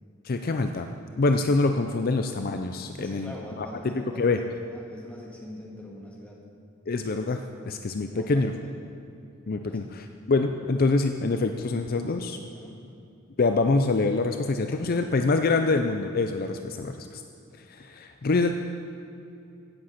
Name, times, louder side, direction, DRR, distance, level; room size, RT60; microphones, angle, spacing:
voice 1, 0.2-0.9 1.2-4.4 6.9-7.4 7.7-8.5 9.5-12.4 13.4-17.2 17.7-18.6, left 3 dB, 45° left, 6 dB, 0.5 m, -25 dB
voice 2, 3.0-4.4 4.7-6.4 7.6-8.8 9.6-10.1 11.9-12.8 14.7-15.1 15.6-15.7, left 1 dB, 5° left, -3 dB, 2.0 m, -44 dB
16.5 x 7.8 x 5.8 m, 2.6 s
head